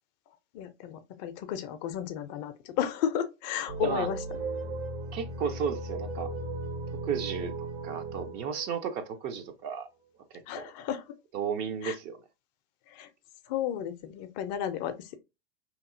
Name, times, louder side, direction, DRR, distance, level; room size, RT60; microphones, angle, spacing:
voice 1, 0.5-4.2 10.5-11.2 11.8-12.0 12.9-13.1 13.5-15.2, left 9 dB, 45° left, 0.5 m, -33 dB
sound 1, 3.7-9.8, right 2 dB, 75° right, 1.6 m, -37 dB
voice 2, 5.1-6.3 7.0-9.9 10.3-10.7 11.3-12.2, right 7 dB, 35° right, 0.5 m, -34 dB
2.9 x 2.6 x 2.5 m
hypercardioid pair, 120°, 30 cm